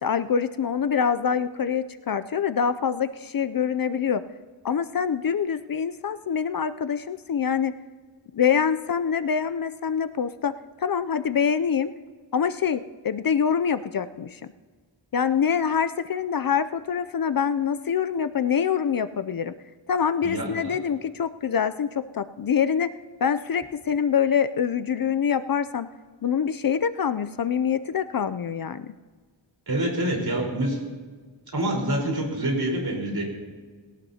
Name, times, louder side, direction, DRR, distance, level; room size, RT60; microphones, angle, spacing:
voice 1, 0.0-4.2 4.6-7.7 8.3-10.5 10.8-11.9 12.3-14.5 15.1-19.5 19.9-22.9 23.2-25.9 26.2-28.9, left 7 dB, 50° left, 12 dB, 0.5 m, -25 dB
voice 2, 20.2-20.8 29.7-30.8 31.5-33.2, right 1 dB, 55° right, -1 dB, 4.4 m, -26 dB
21.0 x 17.0 x 2.9 m, 1.5 s
wide cardioid pair, 85°, 45 cm